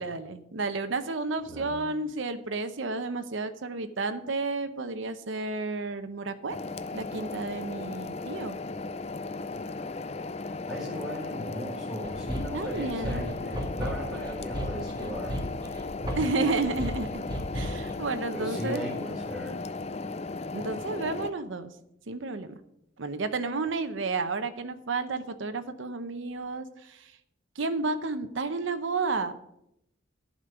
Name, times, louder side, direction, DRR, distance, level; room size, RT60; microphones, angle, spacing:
voice 1, 0.0-6.6 6.9-8.6 12.5-13.3 16.1-17.2 17.5-18.8 20.5-21.7 22.1-22.6 23.0-27.0 27.6-29.4, right 3 dB, 80° right, 9 dB, 0.8 m, -31 dB
sound 1, 6.5-21.3, left 3 dB, 35° left, 0.4 m, -36 dB
voice 2, 10.7-15.3 18.3-19.6, equal, 5° right, -4 dB, 4.9 m, -37 dB
sound 2, 12.0-17.9, equal, 20° right, 1.5 m, -34 dB
11.0 x 5.2 x 8.0 m, 0.78 s
head